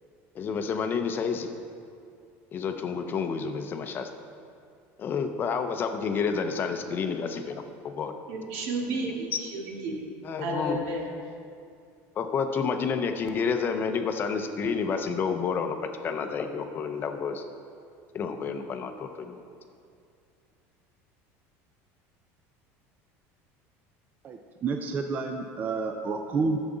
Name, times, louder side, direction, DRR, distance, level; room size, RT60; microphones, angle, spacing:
voice 1, 0.3-1.5 2.5-4.1 5.0-8.1 9.3-9.4 10.2-10.8 12.2-15.8 16.0-17.4 18.1-19.4, left 5 dB, 30° left, 7 dB, 0.6 m, -29 dB
voice 2, 8.3-10.1 10.4-11.1, right 2 dB, 75° right, -1 dB, 1.8 m, -32 dB
voice 3, 24.2-26.6, right 4 dB, 25° right, 4 dB, 0.5 m, -29 dB
11.0 x 7.2 x 3.8 m, 2.4 s
cardioid pair, 145°, 7 cm